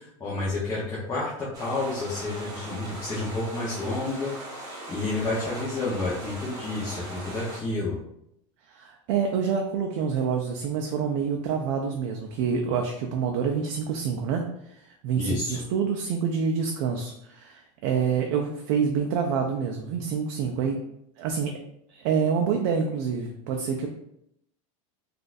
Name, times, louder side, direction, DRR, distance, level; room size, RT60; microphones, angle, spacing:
voice 1, 0.0-8.0 15.2-15.6, left 2 dB, 20° left, -7 dB, 0.7 m, -30 dB
sound 1, 1.5-7.6, right 1 dB, 20° right, 1.0 m, -39 dB
voice 2, 8.7-14.4 14.7-20.8 21.2-21.5 21.9-23.9, right 6 dB, 60° right, 2 dB, 0.4 m, -27 dB
3.8 x 2.4 x 2.5 m, 0.78 s
supercardioid pair, 135°, 18 cm